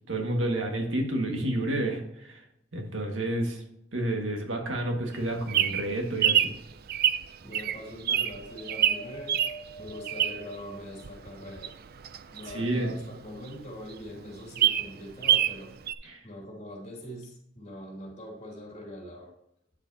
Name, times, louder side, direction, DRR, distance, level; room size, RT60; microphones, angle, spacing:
voice 1, 0.1-2.4 2.7-3.6 3.9-6.5 12.5-12.9 16.0-16.2, right 1 dB, 85° right, 2 dB, 1.8 m, -30 dB
Bird vocalization bird call bird song, 5.1-10.6 11.0-13.2 13.6-13.7 13.9-14.0 14.3-15.6 15.9-16.0, right 10 dB, 55° right, 0.4 m, -26 dB
voice 2, 7.4-9.4 9.8-11.8 12.3-15.7 16.2-19.4, left 1 dB, 40° left, -2 dB, 2.9 m, -43 dB
Wind, 8.4-12.0 12.6-13.6 14.4-14.5, right 1 dB, 70° left, 1.0 m, -47 dB
9.8 x 6.8 x 2.8 m, 0.75 s
head